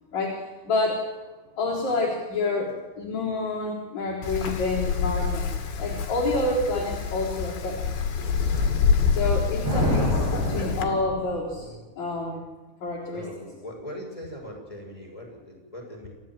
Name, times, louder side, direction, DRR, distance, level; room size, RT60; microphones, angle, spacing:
voice 1, 0.1-1.0 1.6-5.5 5.8-7.8 9.1-11.7 12.0-12.4 12.8-13.3, left 2 dB, 35° left, -5 dB, 4.9 m, -28 dB
Wind, 4.2-10.8, left 5 dB, 65° left, 4.4 m, -26 dB
voice 2, 4.5-5.0 11.5-11.9 13.1-16.1, left 1 dB, 5° left, 1 dB, 6.0 m, -41 dB
sound 1, 9.6-11.6, right 1 dB, 45° right, 9.8 m, -28 dB
28.5 x 15.0 x 7.6 m, 1.3 s
omnidirectional pair, 5.7 m